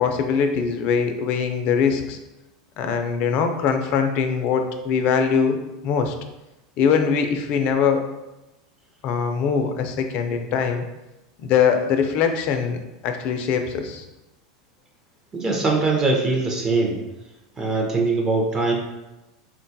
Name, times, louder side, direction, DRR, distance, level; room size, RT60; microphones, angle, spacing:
voice 1, 0.0-2.2 2.8-5.6 5.8-6.1 6.8-8.0 9.0-10.8 11.4-12.8 13.0-14.1, left 6 dB, 45° left, 5 dB, 0.4 m, -22 dB
voice 2, 15.3-17.0 17.6-18.7, right 3 dB, 20° right, 0 dB, 0.5 m, -22 dB
3.7 x 2.2 x 2.7 m, 0.98 s
supercardioid pair, 130°, 3 cm